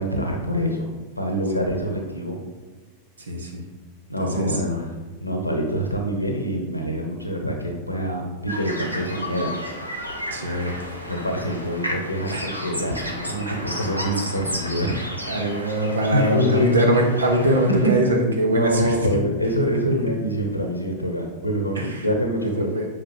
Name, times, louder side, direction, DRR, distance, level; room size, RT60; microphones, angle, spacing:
voice 1, 0.0-2.4 4.1-4.9 5.2-10.0 11.0-15.1 16.1-16.7 17.8-17.9 18.5-22.7, equal, 85° left, 2 dB, 0.9 m, -25 dB
voice 2, 3.3-3.6 4.2-4.5 10.3-10.7 12.3-12.4 13.5-13.6 15.3-18.9 21.8-21.9 22.6-22.8, right 1 dB, 70° right, 3 dB, 1.2 m, -22 dB
sound 1, 8.5-17.9, equal, 85° right, 1.0 m, -33 dB
8.6 x 5.4 x 3.0 m, 1.3 s
figure-of-eight pair, 90°, 0 cm